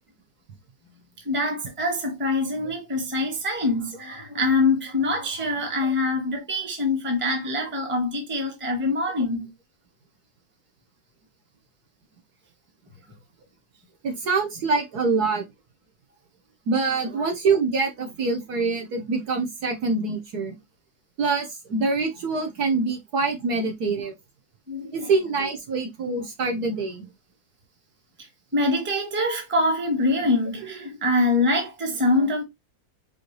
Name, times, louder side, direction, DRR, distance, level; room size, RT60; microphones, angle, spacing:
voice 1, 1.2-9.5 17.2-17.3 24.7-25.1 28.5-32.4, left 2 dB, 10° right, 0.9 m, -24 dB
voice 2, 14.0-15.5 16.7-20.5 21.2-24.1 24.9-27.1, right 4 dB, 60° right, 1.4 m, -25 dB
5.0 x 3.2 x 3.1 m
omnidirectional pair, 2.1 m